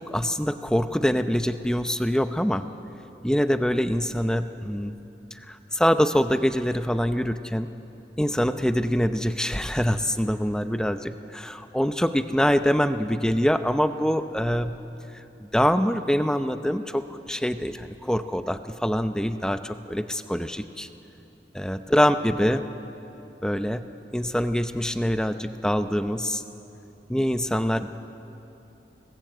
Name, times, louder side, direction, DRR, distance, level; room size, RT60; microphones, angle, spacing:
voice 1, 0.1-2.7 3.2-4.9 5.3-7.7 8.2-14.8 15.1-20.9 21.5-22.7 23.4-26.4 27.1-27.9, equal, 5° left, 9 dB, 0.6 m, -25 dB
26.0 x 20.0 x 8.0 m, 2.9 s
head